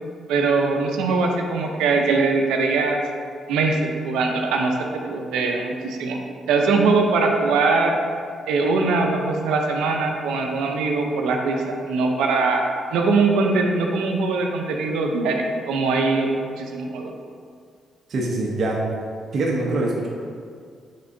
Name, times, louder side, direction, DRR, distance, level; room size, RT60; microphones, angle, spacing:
voice 1, 0.3-3.0 3.5-6.2 6.5-8.0 8.5-12.6 12.9-17.1, right 3 dB, 85° right, 2 dB, 0.7 m, -21 dB
voice 2, 18.1-18.8 19.3-20.1, right 2 dB, 60° right, -3 dB, 0.9 m, -23 dB
9.4 x 3.7 x 2.7 m, 2.1 s
supercardioid pair, 65°, 0 cm